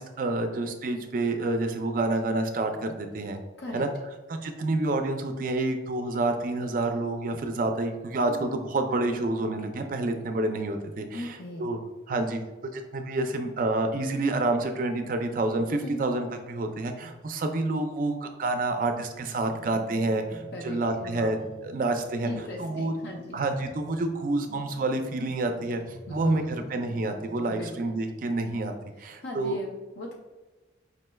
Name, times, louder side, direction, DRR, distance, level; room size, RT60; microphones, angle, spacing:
voice 1, 0.0-3.4 3.7-3.9 4.3-11.8 12.1-12.4 12.7-22.3 22.6-22.9 23.3-25.8 26.1-28.7 29.0-29.5, right 2 dB, 45° right, 6 dB, 0.3 m, -28 dB
voice 2, 11.1-11.7 15.8-16.0 20.5-21.4 22.2-23.4 26.1-26.7 27.5-27.8 29.0-30.1, left 1 dB, 60° left, 0 dB, 0.5 m, -39 dB
sound 1, 19.2-28.1, equal, 5° left, 0.9 m, -49 dB
5.0 x 3.1 x 2.2 m, 1.1 s
head